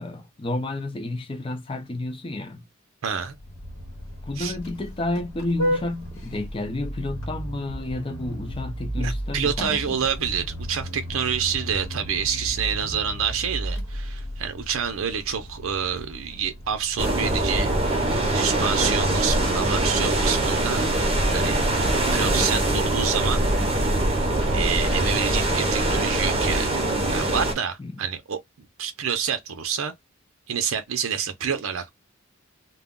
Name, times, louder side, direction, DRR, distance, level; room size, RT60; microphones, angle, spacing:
voice 1, 0.0-2.7 4.2-10.0 27.8-28.0, left 2 dB, 25° left, 0.5 m, -31 dB
voice 2, 3.0-3.4 4.4-4.5 9.0-20.9 21.3-21.6 22.1-23.4 24.5-29.9 30.5-31.9, right 7 dB, 75° right, 0.5 m, -28 dB
Vehicle horn car horn honking, 3.3-18.6, equal, 75° left, 0.9 m, -34 dB
sound 1, 17.0-27.5, right 1 dB, 25° right, 0.7 m, -23 dB
2.2 x 2.0 x 3.6 m
head